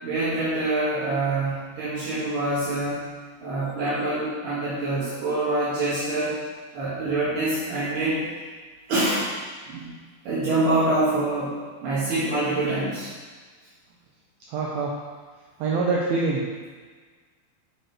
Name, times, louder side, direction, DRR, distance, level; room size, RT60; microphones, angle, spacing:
voice 1, 0.0-3.0 3.4-6.4 6.7-8.2 8.9-9.3 9.7-9.9 10.3-11.5 11.8-13.1, right 2 dB, 65° right, -11 dB, 3.8 m, -25 dB
voice 2, 14.5-14.9 15.6-16.4, right 3 dB, 80° right, -3 dB, 2.1 m, -24 dB
10.0 x 6.8 x 3.3 m, 1.5 s
omnidirectional pair, 5.4 m